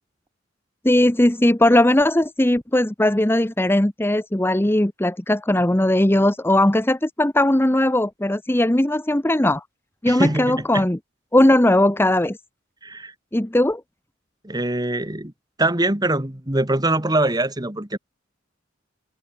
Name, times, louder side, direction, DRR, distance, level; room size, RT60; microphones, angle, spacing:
voice 1, 0.8-9.6 10.0-11.0 11.3-12.4 13.3-13.8, left 1 dB, 10° left, 0.9 m, -18 dB
voice 2, 10.1-10.9 12.8-13.1 14.4-15.3 15.6-18.0, right 2 dB, 20° right, 2.3 m, -23 dB
open air
head